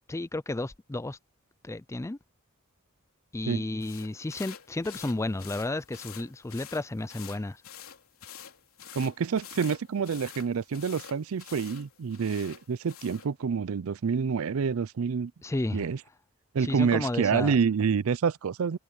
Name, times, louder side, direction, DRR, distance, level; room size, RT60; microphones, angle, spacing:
voice 1, 0.1-1.2 1.6-2.2 3.3-7.6 15.4-15.8 16.6-17.6, left 2 dB, 15° left, 0.4 m, -32 dB
sound 1, 3.8-13.3, left 9 dB, 80° left, 3.5 m, -47 dB
voice 2, 8.9-15.3 15.7-16.0 16.5-18.8, right 6 dB, 80° right, 0.5 m, -27 dB
head